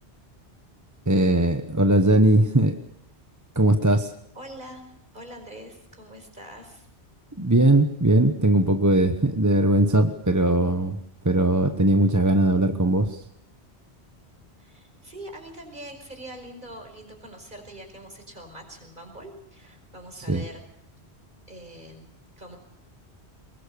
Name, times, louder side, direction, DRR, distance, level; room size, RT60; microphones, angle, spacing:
voice 1, 1.1-2.7 3.5-4.1 7.4-11.0 11.2-13.2 20.3-20.4, right 1 dB, 15° right, 7 dB, 1.0 m, -20 dB
voice 2, 4.3-6.9 14.6-20.6 21.5-22.1 22.4-22.6, right 1 dB, 45° right, 4 dB, 5.2 m, -43 dB
23.5 x 21.5 x 6.9 m, 0.74 s
omnidirectional pair, 1.1 m